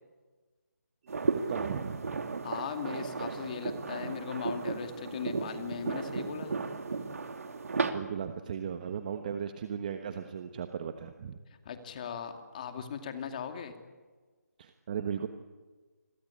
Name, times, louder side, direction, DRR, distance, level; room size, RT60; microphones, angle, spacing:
voice 1, 1.1-2.3 7.9-11.4 14.6-15.3, right 7 dB, 30° right, 8 dB, 1.2 m, -37 dB
sound 1, 1.1-7.9, right 4 dB, 55° right, 2.9 m, -34 dB
voice 2, 2.4-6.6 11.6-13.7, left 7 dB, 25° left, 7 dB, 2.5 m, -38 dB
29.0 x 22.0 x 8.7 m, 1.4 s
figure-of-eight pair, 165°, 9 cm